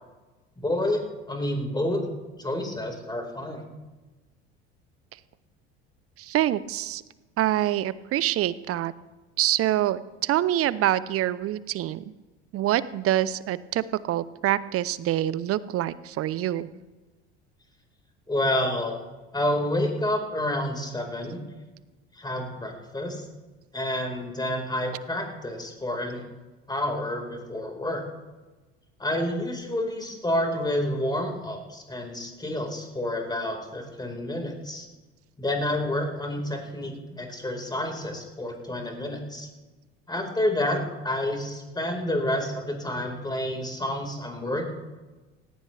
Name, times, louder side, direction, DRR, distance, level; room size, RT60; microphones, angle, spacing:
voice 1, 0.6-1.0 1.3-2.0 2.4-3.6 18.3-19.0 19.3-21.4 22.1-23.2 23.7-26.2 26.7-28.0 29.0-34.9 35.4-39.5 40.1-44.6, left 1 dB, 15° left, 3 dB, 4.6 m, -29 dB
voice 2, 6.2-7.0 7.4-8.9 9.4-12.0 12.5-16.7, right 13 dB, 45° right, 17 dB, 0.8 m, -26 dB
18.0 x 16.5 x 3.4 m, 1.2 s
hypercardioid pair, 70°, 31 cm